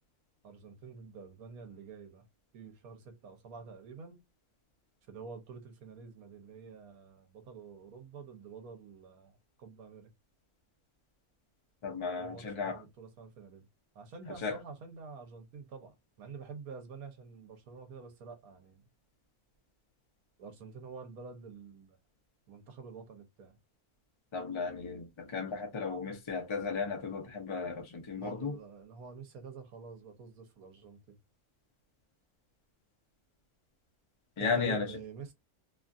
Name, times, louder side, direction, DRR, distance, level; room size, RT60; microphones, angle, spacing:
voice 1, 0.4-2.3 2.5-4.2 5.1-10.1 12.0-13.7 13.9-18.9 20.4-22.0 22.5-23.6 28.2-31.2 34.4-35.3, right 5 dB, 75° right, 1.3 m, -48 dB
voice 2, 11.8-12.8 14.3-14.6 24.3-28.6 34.4-34.9, left 5 dB, 30° left, 0.6 m, -35 dB
3.0 x 2.4 x 2.5 m
omnidirectional pair, 1.6 m